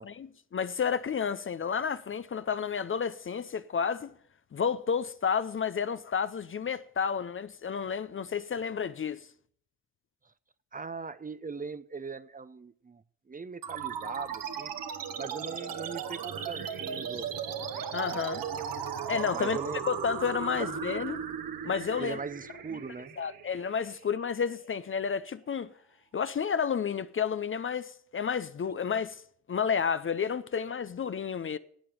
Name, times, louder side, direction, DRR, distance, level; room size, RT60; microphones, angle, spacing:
voice 1, 0.0-4.1 4.5-9.3 17.9-18.4 19.1-19.6 19.9-21.2 21.6-22.2 23.2-25.7 26.1-29.2 29.5-31.6, left 6 dB, 35° left, 0.6 m, -31 dB
voice 2, 10.7-14.7 15.2-17.3 19.3-19.8 20.6-20.7 22.0-23.2, right 4 dB, 20° right, 0.7 m, -40 dB
sound 1, 13.6-24.6, right 7 dB, 65° right, 1.5 m, -37 dB
11.5 x 8.6 x 7.8 m
hypercardioid pair, 45°, 37 cm